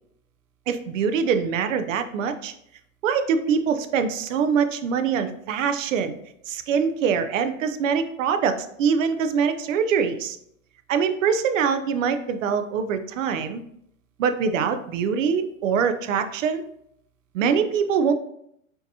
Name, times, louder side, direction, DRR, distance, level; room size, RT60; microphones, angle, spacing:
voice 1, 0.7-2.5 3.0-6.2 6.5-10.4 10.9-13.6 14.2-16.6 17.3-18.1, right 6 dB, 65° right, 9 dB, 0.6 m, -23 dB
5.6 x 2.8 x 2.7 m, 0.73 s
hypercardioid pair, 140°, 41 cm